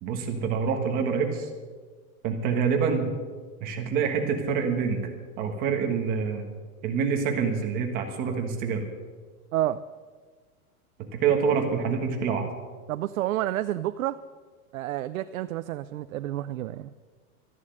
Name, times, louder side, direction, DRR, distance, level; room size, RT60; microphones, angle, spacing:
voice 1, 0.0-1.5 2.2-3.1 3.6-5.1 5.4-6.4 6.8-8.9 11.1-12.5, right 6 dB, 20° right, 3 dB, 1.3 m, -26 dB
voice 2, 9.5-9.8 12.9-14.2 14.7-16.9, right 13 dB, 65° right, 12 dB, 0.6 m, -29 dB
13.5 x 11.0 x 7.8 m, 1.4 s
supercardioid pair, 175°, 44 cm